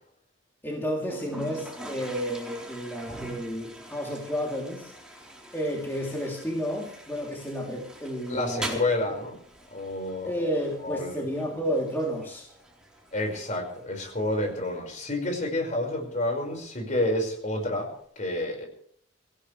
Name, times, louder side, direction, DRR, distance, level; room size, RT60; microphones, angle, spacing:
voice 1, 0.6-4.9 5.5-8.8 10.2-12.5, equal, 10° left, -3 dB, 3.2 m, -31 dB
Toilet flush, 1.0-18.0, right 1 dB, 5° right, 4.1 m, -44 dB
voice 2, 8.3-9.4 9.7-10.5 10.8-11.2 13.1-17.9 18.2-18.6, left 1 dB, 40° left, 2 dB, 5.4 m, -29 dB
26.0 x 16.5 x 3.4 m, 0.62 s
head